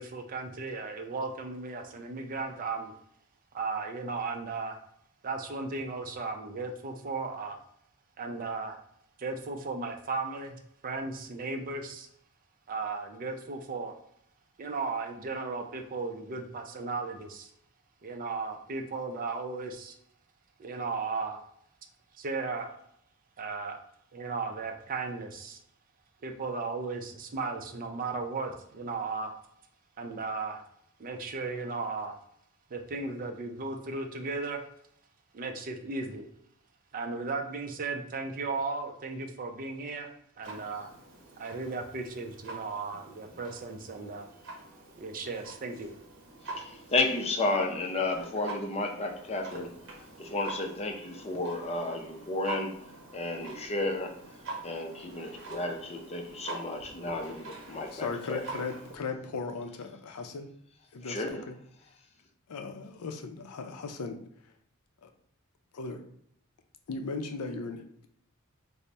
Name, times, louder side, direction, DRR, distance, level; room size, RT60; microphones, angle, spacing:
voice 1, 0.0-2.9 3.5-4.8 5.2-7.6 8.2-8.8 9.2-12.1 12.7-13.9 14.6-17.5 18.0-20.0 20.6-21.4 22.2-22.8 23.4-23.8 24.1-25.6 26.2-29.3 30.0-30.6 31.0-32.2 32.7-34.6 35.3-36.3 36.9-40.1 40.4-40.9 41.4-44.3 45.0-45.9, right 3 dB, 40° right, 0.4 m, -35 dB
Clock, 40.4-59.0, right 3 dB, 55° right, 0.8 m, -45 dB
voice 2, 46.6-49.7 50.2-52.8 53.1-54.1 54.6-58.6 61.0-61.4, left 2 dB, 30° left, 0.5 m, -32 dB
voice 3, 57.9-60.5 60.9-61.6 62.5-64.2 65.0-65.1 65.7-66.0 66.9-67.8, left 4 dB, 85° left, 0.4 m, -37 dB
4.0 x 2.0 x 3.2 m
head